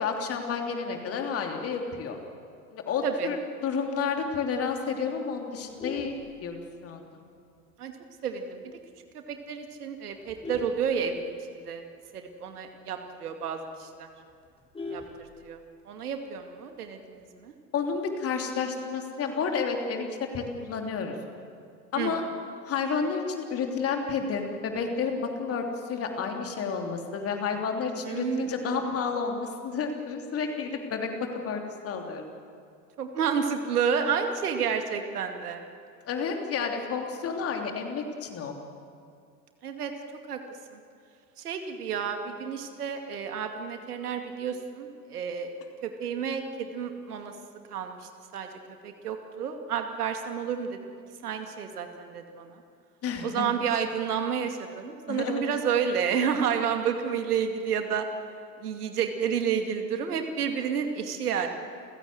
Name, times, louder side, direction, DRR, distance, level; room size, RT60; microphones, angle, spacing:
voice 1, 0.0-2.2 2.7-6.2 6.4-7.2 17.7-21.1 21.9-22.2 22.7-32.2 36.1-38.5 53.0-53.5 55.1-55.4, left 5 dB, 30° left, 3 dB, 3.1 m, -31 dB
Vehicle horn car horn honking, 5.5-7.0 7.5-7.7 8.0-8.1 8.5-8.6 8.9-9.3 9.9-11.7 12.1-12.2 12.4-12.5 12.9-13.0 13.4-13.5 13.8-15.8 17.0-17.4, left 3 dB, 10° left, 4.3 m, -42 dB
voice 2, 8.2-8.8 9.1-11.8 12.1-14.1 14.9-15.0 15.4-15.6 15.9-17.5 22.0-22.1 28.1-28.8 33.0-35.6 39.6-39.9 40.3-40.4 40.7-40.8 41.4-45.5 45.8-47.3 47.7-48.5 48.8-50.8 51.2-52.6 53.2-58.1 58.6-61.5, right 7 dB, 60° right, 5 dB, 2.5 m, -30 dB
29.0 x 16.5 x 7.9 m, 2.5 s
figure-of-eight pair, 90°, 50 cm